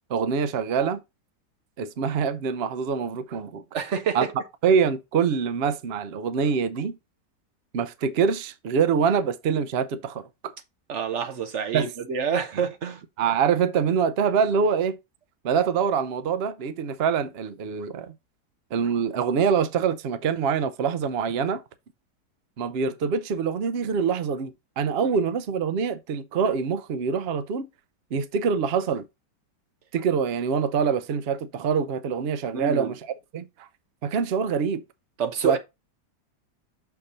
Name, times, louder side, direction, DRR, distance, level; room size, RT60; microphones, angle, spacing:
voice 1, 0.1-1.0 1.8-3.6 4.1-4.2 4.6-7.0 7.7-10.5 11.7-11.9 12.5-12.6 13.2-15.0 15.4-18.1 18.7-21.6 22.6-27.7 28.1-29.0 29.9-33.7 34.0-34.8 35.4-35.6, right 6 dB, 80° right, 0.5 m, -25 dB
voice 2, 3.7-4.2 10.9-13.0 32.5-32.9 35.2-35.6, right 6 dB, 45° right, 1.2 m, -27 dB
6.5 x 4.5 x 4.1 m
omnidirectional pair, 1.9 m